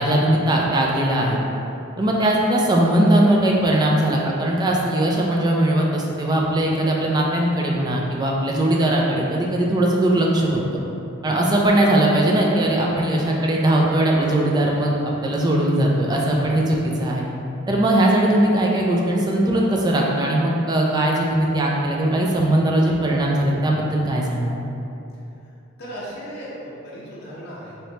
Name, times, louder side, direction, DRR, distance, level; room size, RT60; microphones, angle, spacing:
voice 1, 0.0-1.4 2.0-10.8 11.2-17.2 17.7-24.6, right 1 dB, 20° right, -2 dB, 0.4 m, -20 dB
voice 2, 25.8-27.7, equal, 55° left, -8 dB, 0.7 m, -36 dB
3.1 x 3.1 x 2.8 m, 2.8 s
head